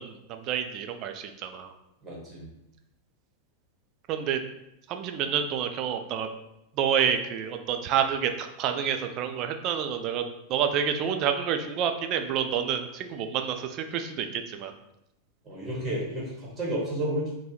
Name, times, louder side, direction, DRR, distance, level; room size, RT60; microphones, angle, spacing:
voice 1, 0.0-1.7 4.1-4.4 4.9-6.3 6.8-10.2 10.5-14.7, right 8 dB, 40° right, 7 dB, 0.3 m, -28 dB
voice 2, 2.0-2.4 15.4-17.3, right 1 dB, 20° right, -4 dB, 1.1 m, -31 dB
3.2 x 2.1 x 2.9 m, 0.86 s
figure-of-eight pair, 90°, 0 cm